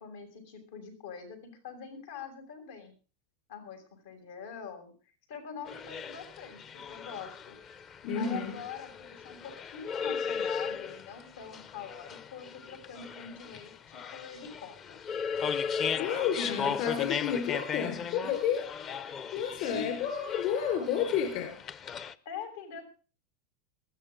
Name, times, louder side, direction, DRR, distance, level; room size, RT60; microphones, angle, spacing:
voice 1, 0.0-2.9 3.5-4.9 5.3-7.6 8.1-15.0 15.9-16.1 18.2-18.7 19.6-19.9 22.2-22.8, left 6 dB, 85° left, 6.7 m, -44 dB
sound 1, 5.7-22.1, left 6 dB, 30° left, 0.7 m, -37 dB
voice 2, 8.0-8.5 16.0-18.6 19.3-21.5, left 8 dB, 55° left, 4.6 m, -30 dB
21.0 x 13.5 x 3.8 m
supercardioid pair, 150°, 0 cm